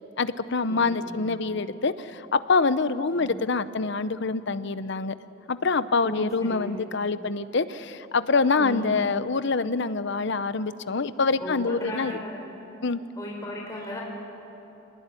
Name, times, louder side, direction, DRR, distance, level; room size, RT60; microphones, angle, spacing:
voice 1, 0.2-5.1 5.5-12.2 12.8-13.0, left 4 dB, 60° left, 13 dB, 0.8 m, -25 dB
voice 2, 0.7-1.2 3.2-3.3 6.0-6.7 8.6-9.1 11.4-12.4 13.2-14.0, left 1 dB, 15° left, -2 dB, 4.0 m, -36 dB
25.5 x 20.0 x 9.8 m, 3.0 s
head